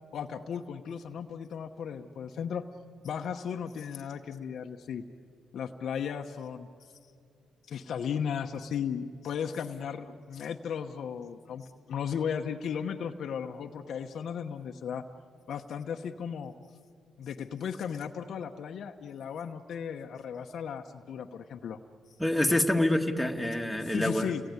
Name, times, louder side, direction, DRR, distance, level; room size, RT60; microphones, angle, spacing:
voice 1, 0.1-2.6 3.0-5.0 5.5-6.7 7.7-15.0 15.5-16.5 17.2-21.8 23.8-24.4, left 7 dB, 65° left, 4 dB, 1.0 m, -35 dB
voice 2, 22.2-24.3, left 1 dB, 5° left, 2 dB, 2.0 m, -26 dB
30.0 x 20.0 x 9.7 m, 2.4 s
cardioid pair, 90°, 0 cm